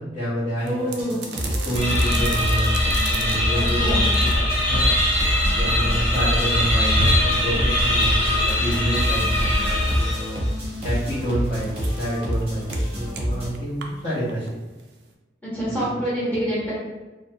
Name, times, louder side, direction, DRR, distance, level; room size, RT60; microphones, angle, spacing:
voice 1, 0.0-0.9 1.2-2.7 3.1-10.4 10.8-14.6 15.7-15.8, right 1 dB, 35° left, -12 dB, 0.8 m, -28 dB
voice 2, 0.6-1.2 3.5-4.1 15.4-16.7, equal, 10° left, -10 dB, 1.0 m, -26 dB
sound 1, 0.6-15.1, right 1 dB, 65° right, 0.3 m, -34 dB
sound 2, 0.8-13.5, equal, 30° right, 0.7 m, -28 dB
sound 3, 1.7-10.4, left 1 dB, 75° left, 1.0 m, -21 dB
2.4 x 2.1 x 2.7 m, 1.2 s
head